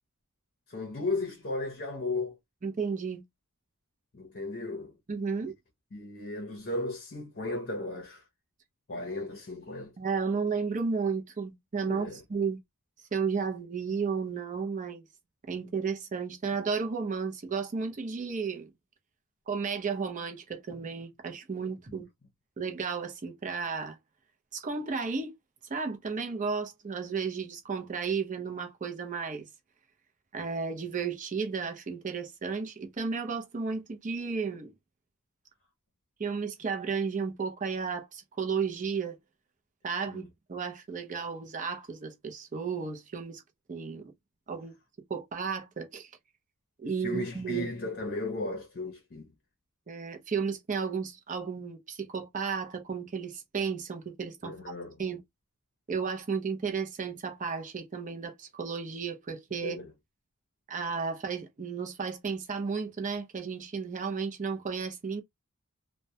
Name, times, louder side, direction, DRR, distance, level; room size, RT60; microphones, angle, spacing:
voice 1, 0.7-2.4 4.1-4.9 5.4-5.5 5.9-8.2 8.9-9.9 11.9-12.2 40.1-40.3 47.0-49.3 54.4-55.0 59.6-59.9, left 2 dB, 45° left, 0.6 m, -35 dB
voice 2, 2.6-3.2 5.1-5.5 10.0-12.6 13.1-15.0 15.4-18.7 19.5-22.1 22.6-24.0 24.5-25.3 25.7-29.5 30.3-34.7 36.2-39.2 39.8-43.4 43.7-44.0 44.5-44.7 45.1-46.1 46.8-47.7 49.9-54.5 55.0-55.2 55.9-59.8 60.7-65.2, right 5 dB, 35° right, 0.5 m, -33 dB
2.2 x 2.1 x 2.7 m
head